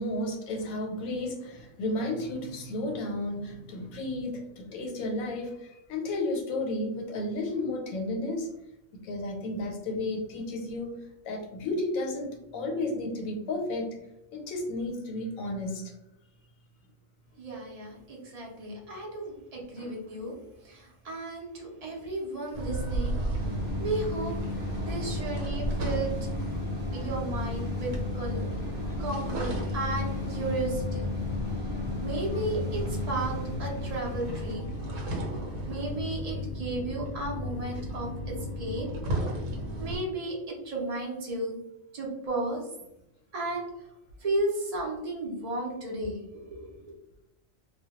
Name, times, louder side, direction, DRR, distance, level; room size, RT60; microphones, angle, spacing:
voice 1, 0.0-8.5 9.0-11.0 11.2-13.9 14.3-15.9 19.8-19.9 22.7-22.9 28.8-28.9 34.7-35.0, left 2 dB, 90° left, 1 dB, 1.0 m, -33 dB
voice 2, 17.4-20.4 20.6-23.2 23.8-24.3 24.9-26.1 26.9-28.6 29.0-31.1 32.0-34.7 35.6-38.1 38.6-38.9 39.8-41.5 41.9-42.6 43.3-43.7 44.2-46.8, right 2 dB, 55° right, -2 dB, 0.4 m, -34 dB
sound 1, 22.5-40.0, equal, 70° right, 1.0 m, -33 dB
sound 2, 23.4-34.5, left 4 dB, 10° right, 0.6 m, -36 dB
2.2 x 2.1 x 2.8 m, 0.87 s
omnidirectional pair, 1.4 m